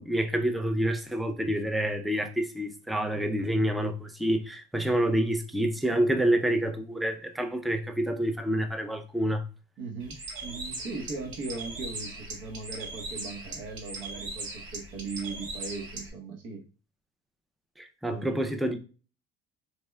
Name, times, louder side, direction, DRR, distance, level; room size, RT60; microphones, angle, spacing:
voice 1, 0.0-9.4 17.8-18.8, right 1 dB, ahead, 0.3 m, -28 dB
voice 2, 9.8-16.6 18.1-18.4, right 4 dB, 65° right, 0.9 m, -38 dB
Bird, 10.0-16.1, right 2 dB, 85° right, 1.3 m, -39 dB
4.3 x 2.2 x 3.2 m
cardioid pair, 140°, 21 cm